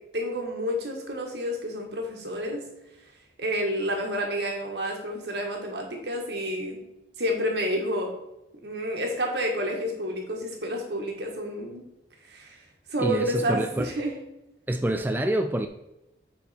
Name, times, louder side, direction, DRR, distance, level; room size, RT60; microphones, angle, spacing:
voice 1, 0.1-2.6 3.4-6.8 7.2-8.1 8.6-11.8 12.3-12.6 12.9-14.2, equal, 75° right, 1 dB, 1.8 m, -29 dB
voice 2, 13.0-13.9 14.7-15.7, right 1 dB, 10° right, 6 dB, 0.3 m, -26 dB
8.9 x 4.3 x 4.4 m, 0.90 s
head